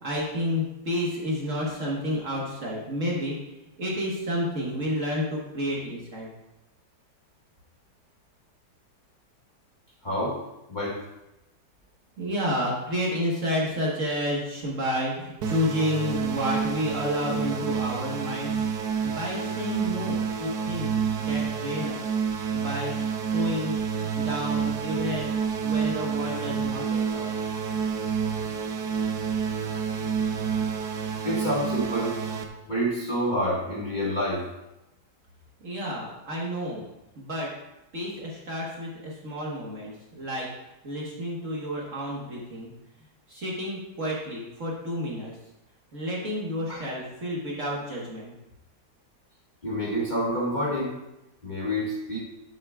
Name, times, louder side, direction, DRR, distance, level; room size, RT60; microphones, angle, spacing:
voice 1, 0.0-3.4 3.8-6.3 12.2-18.7 19.0-20.9 21.1-22.1 22.5-25.3 25.6-27.3 35.6-36.8 37.2-37.5 37.9-40.5 40.8-42.7 43.3-45.3 45.9-48.3, equal, 50° right, -4 dB, 1.7 m, -30 dB
voice 2, 10.0-10.4 10.7-11.0 31.2-32.2 32.7-34.4 46.7-46.8 49.6-50.9 51.4-52.2, equal, 25° left, -5 dB, 1.7 m, -27 dB
sound 1, 15.4-32.5, right 6 dB, 70° right, 1.3 m, -29 dB
11.5 x 6.7 x 2.4 m, 0.92 s
omnidirectional pair, 1.9 m